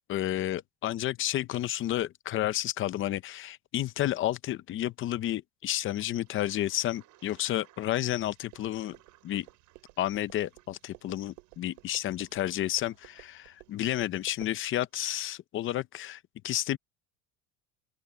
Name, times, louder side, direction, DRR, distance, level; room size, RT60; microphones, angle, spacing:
voice 1, 0.1-9.0 9.2-9.5 10.0-16.8, left 13 dB, 30° left, 0.7 m, -31 dB
Toilet flush, 6.0-14.6, right 16 dB, 50° right, 7.6 m, -63 dB
sound 1, 8.1-14.6, right 27 dB, 85° right, 3.9 m, -55 dB
open air
cardioid pair, 165°, 40 cm